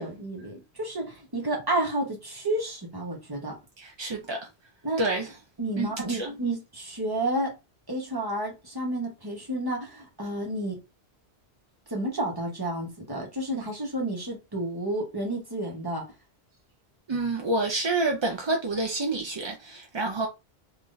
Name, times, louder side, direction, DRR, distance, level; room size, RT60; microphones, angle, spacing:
voice 1, 0.0-3.6 4.8-5.0 5.6-7.5 7.9-10.8 11.9-16.0, right 1 dB, 20° right, 1.1 m, -31 dB
voice 2, 3.8-4.4 5.0-5.3 5.8-6.3 17.1-20.3, right 2 dB, 40° right, 0.4 m, -28 dB
3.6 x 3.0 x 2.5 m
omnidirectional pair, 1.1 m